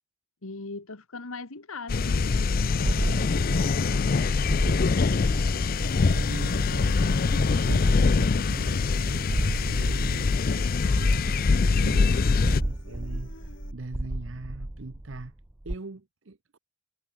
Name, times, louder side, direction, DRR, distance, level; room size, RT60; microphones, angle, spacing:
voice 1, 0.4-5.0, left 3 dB, 80° left, 1.6 m, -41 dB
sound 1, 1.9-12.6, left 4 dB, 45° left, 0.4 m, -24 dB
sound 2, 2.8-15.8, right 1 dB, 10° right, 0.5 m, -34 dB
Human voice, 5.7-13.7, left 1 dB, 60° left, 6.0 m, -49 dB
voice 2, 6.0-13.3 13.7-15.3 15.6-16.6, right 2 dB, 65° right, 0.9 m, -41 dB
head